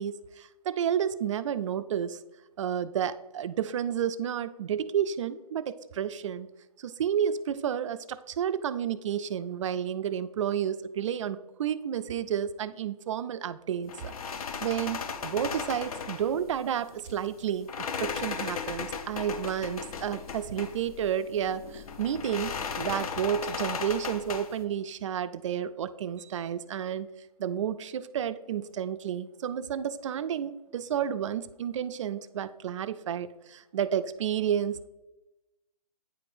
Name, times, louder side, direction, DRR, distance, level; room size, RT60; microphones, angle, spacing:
voice 1, 0.0-2.2 2.6-6.5 6.8-17.7 18.0-27.1 27.4-34.9, right 9 dB, 50° right, 13 dB, 0.4 m, -31 dB
sound 1, 13.9-24.6, left 6 dB, 65° left, 0.7 m, -37 dB
9.1 x 4.8 x 2.5 m, 1.0 s
hypercardioid pair, 145°, 20 cm